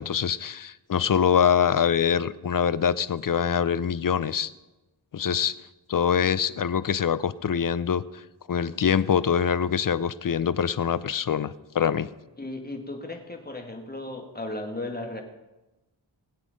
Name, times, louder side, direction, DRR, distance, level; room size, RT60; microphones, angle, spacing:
voice 1, 0.0-4.5 5.1-5.5 5.9-8.2 8.5-12.1, left 7 dB, 45° left, 16 dB, 0.6 m, -24 dB
voice 2, 12.4-15.2, left 2 dB, 20° left, 3 dB, 2.1 m, -35 dB
20.0 x 8.3 x 5.3 m, 1.1 s
wide cardioid pair, 85°, 46 cm